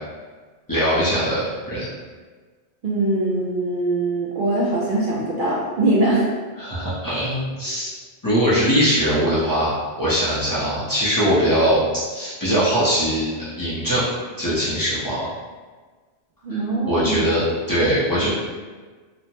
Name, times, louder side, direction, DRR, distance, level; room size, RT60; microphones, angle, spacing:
voice 1, 0.7-1.9 6.6-7.9 8.2-11.8 12.1-14.1 14.4-15.3 16.5-16.6 16.9-18.3, equal, 25° left, -11 dB, 0.6 m, -21 dB
voice 2, 2.8-6.3 16.4-17.2, right 2 dB, 60° right, -5 dB, 0.6 m, -22 dB
3.1 x 2.0 x 2.7 m, 1.4 s
omnidirectional pair, 1.2 m